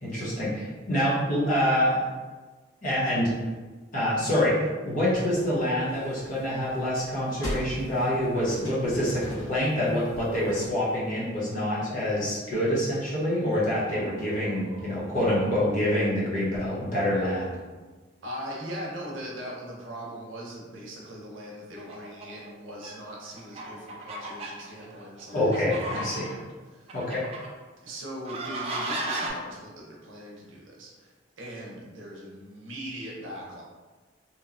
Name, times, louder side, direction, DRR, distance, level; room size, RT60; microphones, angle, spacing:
voice 1, 0.0-0.5 0.9-2.1 2.8-3.3 3.9-17.6 25.3-26.3 26.9-27.2, left 1 dB, 40° left, -7 dB, 0.8 m, -26 dB
sound 1, 5.1-10.7, equal, 85° left, 0.9 m, -40 dB
sound 2, 13.6-17.1, right 1 dB, 15° right, 0.8 m, -47 dB
voice 2, 18.2-27.0 27.8-33.6, equal, 80° right, -3 dB, 0.7 m, -40 dB
sound 3, 21.8-22.5 22.8-22.9 23.4-26.4 26.9-27.5 28.2-29.3, right 2 dB, 30° right, 0.3 m, -34 dB
2.9 x 2.1 x 2.4 m, 1.3 s
head